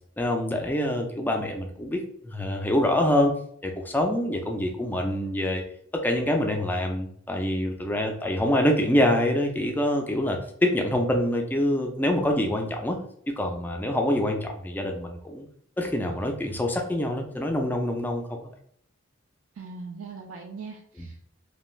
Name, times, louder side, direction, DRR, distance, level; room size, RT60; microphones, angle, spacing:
voice 1, 0.2-3.3 3.6-5.6 5.9-13.0 13.4-15.5 15.8-18.5 21.0-21.1, left 1 dB, 10° left, 3 dB, 0.3 m, -25 dB
voice 2, 19.6-21.2, right 4 dB, 75° right, 2 dB, 0.3 m, -40 dB
2.5 x 2.2 x 3.1 m, 0.66 s
head